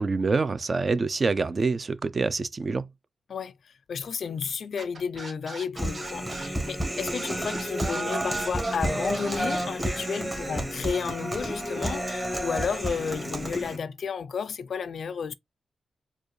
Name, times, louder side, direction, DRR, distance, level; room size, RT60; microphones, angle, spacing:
voice 1, 0.0-2.9, right 4 dB, 45° right, 0.4 m, -26 dB
voice 2, 3.3-15.3, left 6 dB, 70° left, 0.3 m, -32 dB
Scratching (performance technique), 4.8-9.6, right 3 dB, 60° right, 2.0 m, -41 dB
Human voice, 5.8-13.8, right 1 dB, 15° right, 1.2 m, -30 dB
4.6 x 2.4 x 3.0 m
cardioid pair, 80°, 0 cm